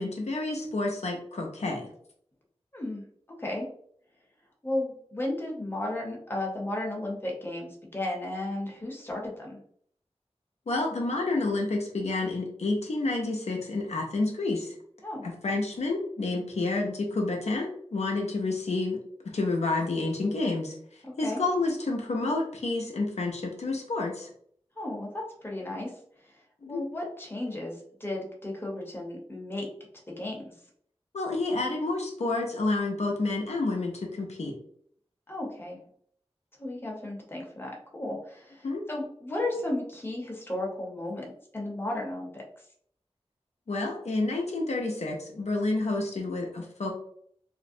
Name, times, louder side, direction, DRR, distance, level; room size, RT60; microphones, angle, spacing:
voice 1, 0.0-1.9 10.7-14.7 15.2-19.0 19.3-24.3 26.6-26.8 31.1-34.6 38.6-38.8 43.7-46.9, left 2 dB, 75° left, 0 dB, 0.5 m, -29 dB
voice 2, 4.6-9.6 15.0-15.3 21.0-21.4 24.8-25.9 26.7-29.7 30.2-30.5 35.3-35.8 36.6-41.3 41.5-42.4, left 1 dB, 20° left, -2 dB, 0.7 m, -34 dB
2.5 x 2.0 x 2.6 m, 0.64 s
wide cardioid pair, 65°, 11 cm